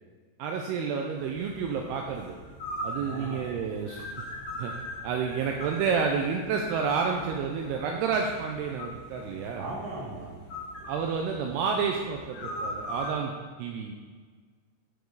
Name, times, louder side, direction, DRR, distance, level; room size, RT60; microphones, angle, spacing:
voice 1, 0.4-2.3 2.8-4.1 4.6-4.7 5.0-9.6 10.9-13.3 13.6-13.9, right 6 dB, 85° right, 2 dB, 2.3 m, -30 dB
sound 1, 1.1-13.1, equal, 60° left, 2.5 m, -41 dB
voice 2, 3.0-3.5 9.5-10.3, right 2 dB, 50° right, -3 dB, 2.2 m, -38 dB
13.0 x 5.0 x 3.9 m, 1.5 s
omnidirectional pair, 5.3 m